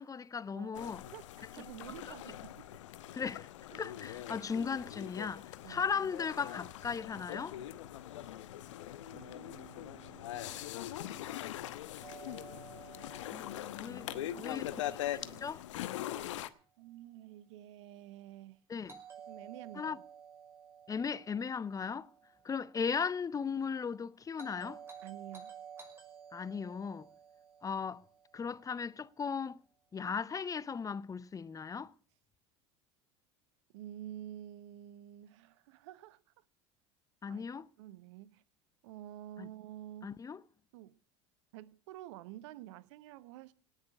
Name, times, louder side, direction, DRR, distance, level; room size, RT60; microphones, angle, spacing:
voice 1, 0.0-1.0 3.1-3.5 3.8-7.6 13.3-13.5 13.8-14.1 14.4-14.7 15.0-15.1 15.4-15.6 18.7-18.9 19.8-20.0 20.9-22.1 22.4-24.8 26.3-27.1 27.6-28.0 28.3-29.6 29.9-31.9 37.2-37.7 39.4-39.5 40.0-40.4, left 6 dB, 20° left, 0.7 m, -37 dB
voice 2, 0.5-2.7 3.7-3.8 5.6-6.1 9.0-11.3 14.1-15.5 16.8-18.6 19.3-20.0 25.0-25.5 33.7-36.2 37.3-37.4 37.8-38.4 38.8-40.2 40.7-41.0 41.5-43.5, right 13 dB, 70° right, 1.0 m, -50 dB
sound 1, 0.8-16.5, left 13 dB, 80° left, 1.0 m, -42 dB
Doorbell, 12.0-16.0 18.9-23.1 24.4-28.8, right 7 dB, 15° right, 5.4 m, -53 dB
18.0 x 6.6 x 9.7 m
hypercardioid pair, 85°, 16 cm